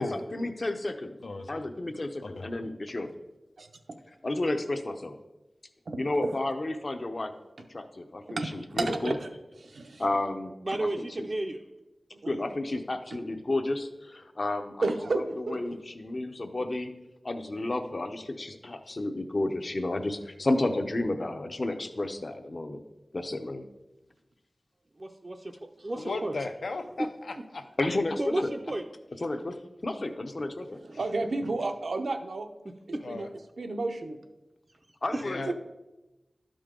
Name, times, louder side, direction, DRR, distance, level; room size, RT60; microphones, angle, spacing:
voice 1, 0.3-1.2 1.5-3.1 4.2-5.1 6.0-7.3 7.7-9.1 10.0-10.5 11.0-11.1 12.3-14.9 15.4-16.9 17.2-22.8 23.1-23.6 27.8-28.5 29.2-29.6 29.8-30.8 35.0-35.5, left 2 dB, 50° left, 7 dB, 0.7 m, -31 dB
voice 2, 1.2-1.6 2.2-2.5 26.0-27.6 33.0-33.3 35.2-35.5, left 3 dB, 85° left, 6 dB, 0.6 m, -36 dB
voice 3, 5.9-6.3 8.3-9.3 9.6-10.1 12.2-12.4 14.8-15.8 30.8-32.5 33.1-33.3 33.6-34.2 35.5-35.6, right 3 dB, 85° right, 7 dB, 0.6 m, -32 dB
voice 4, 10.6-11.6 25.0-25.5 25.8-26.3 27.0-27.1 27.4-27.5 28.2-28.8 32.7-33.1 35.1-35.2, right 1 dB, 40° right, 3 dB, 0.4 m, -32 dB
12.0 x 5.1 x 3.7 m, 1.0 s
wide cardioid pair, 80°, 0 cm